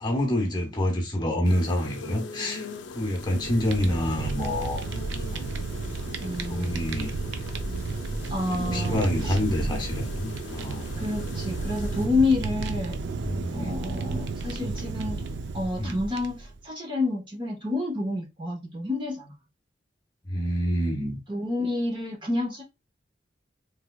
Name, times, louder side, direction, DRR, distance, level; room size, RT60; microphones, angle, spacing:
voice 1, 0.0-2.7 2.9-4.9 5.3-5.5 6.5-7.1 8.5-10.9 13.2-13.8 15.8-16.0 20.2-21.2, equal, 25° left, 0.9 m, -27 dB
sound 1, 1.4-12.1, left 4 dB, 75° left, 0.5 m, -42 dB
Fire, 3.0-16.6, right 3 dB, 70° right, 0.5 m, -32 dB
voice 2, 6.2-6.8 8.3-9.4 11.0-13.0 13.5-15.2 15.5-19.3 21.3-22.6, left 2 dB, 25° right, 0.8 m, -29 dB
3.4 x 3.1 x 2.3 m
head